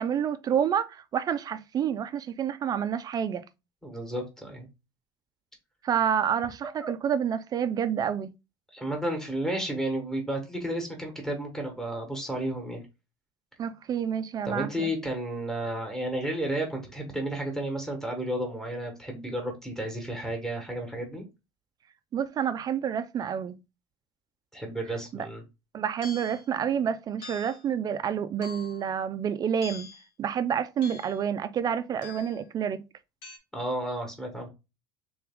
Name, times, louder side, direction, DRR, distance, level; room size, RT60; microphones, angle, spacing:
voice 1, 0.0-3.4 5.8-8.3 13.6-14.9 22.1-23.6 25.1-25.3 25.7-29.9 30.2-32.8, right 8 dB, 30° right, 0.4 m, -28 dB
voice 2, 3.8-4.7 6.8-7.0 8.7-12.8 14.4-21.2 24.5-25.4 33.5-34.5, right 1 dB, 5° left, 1.2 m, -32 dB
sound 1, 26.0-26.4 27.2-27.7 28.4-28.9 29.6-30.1 30.8-31.3 32.0-32.4 33.2-33.4, left 3 dB, 75° left, 1.9 m, -44 dB
3.4 x 3.3 x 3.5 m
supercardioid pair, 120°, 12 cm